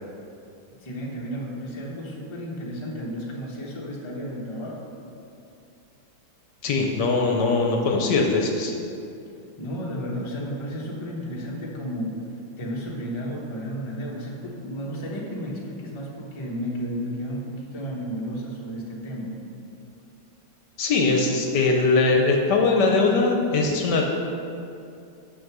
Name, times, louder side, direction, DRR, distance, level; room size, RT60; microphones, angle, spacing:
voice 1, 0.8-4.9 9.6-12.2 12.6-19.3, equal, 20° left, -2 dB, 0.8 m, -33 dB
voice 2, 6.6-8.7 20.8-24.0, left 3 dB, 65° left, 1 dB, 1.3 m, -21 dB
6.8 x 6.3 x 6.0 m, 2.6 s
omnidirectional pair, 2.1 m